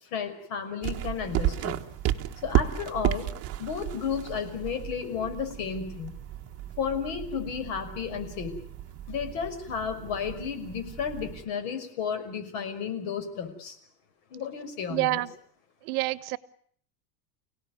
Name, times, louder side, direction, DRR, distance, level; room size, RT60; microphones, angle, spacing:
voice 1, 0.1-1.8 2.4-3.3 3.6-6.1 6.8-8.5 9.1-13.8 14.3-15.2, left 7 dB, 55° left, 8 dB, 5.9 m, -33 dB
sound 1, 0.8-11.5, right 13 dB, 30° right, 1.3 m, -33 dB
voice 2, 14.9-15.3 15.8-16.4, right 20 dB, 60° right, 19 dB, 1.1 m, -27 dB
29.5 x 18.0 x 9.6 m, 0.63 s
supercardioid pair, 165°, 50 cm